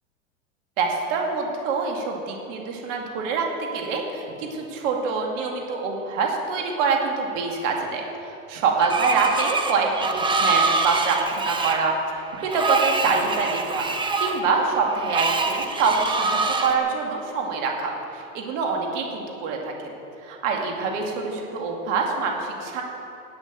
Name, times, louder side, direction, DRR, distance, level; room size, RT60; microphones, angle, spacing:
voice 1, 0.8-8.0 8.5-12.0 12.3-13.9 14.2-19.7 20.2-22.8, right 4 dB, 60° right, 1 dB, 2.5 m, -25 dB
Screech, 8.8-16.8, right 3 dB, 10° right, 1.0 m, -25 dB
11.0 x 8.2 x 9.0 m, 2.9 s
hypercardioid pair, 110°, 42 cm